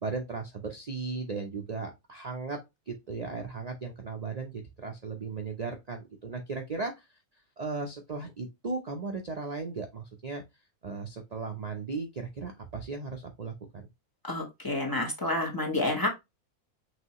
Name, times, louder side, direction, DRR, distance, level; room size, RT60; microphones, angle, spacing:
voice 1, 0.0-2.6 2.9-7.1 7.6-10.4 10.8-13.8, right 4 dB, 45° right, 0.5 m, -36 dB
voice 2, 14.3-16.1, left 2 dB, 15° left, 1.1 m, -29 dB
6.1 x 2.7 x 2.9 m
omnidirectional pair, 1.5 m